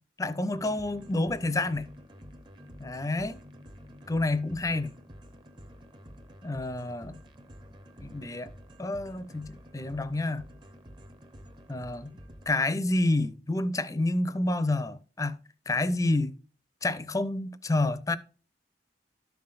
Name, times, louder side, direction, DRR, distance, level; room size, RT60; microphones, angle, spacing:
voice 1, 0.2-1.9 2.8-3.4 4.1-4.9 6.4-7.2 8.0-8.5 8.8-10.4 11.7-12.2 12.5-15.4 15.7-16.4 16.8-18.2, left 2 dB, 20° left, 0.6 m, -29 dB
sound 1, 0.5-12.5, equal, 25° right, 0.8 m, -49 dB
13.0 x 5.7 x 2.5 m
head